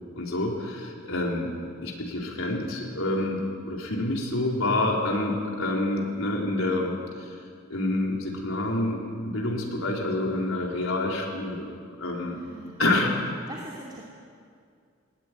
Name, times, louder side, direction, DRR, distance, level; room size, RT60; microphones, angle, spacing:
voice 1, 0.1-7.3 7.7-9.0 9.3-11.7 12.0-12.4 12.8-13.1, left 2 dB, 85° left, -1 dB, 4.2 m, -27 dB
voice 2, 12.3-12.8 13.5-14.0, right 1 dB, 20° right, -3 dB, 2.7 m, -42 dB
19.5 x 18.5 x 9.6 m, 2.3 s
head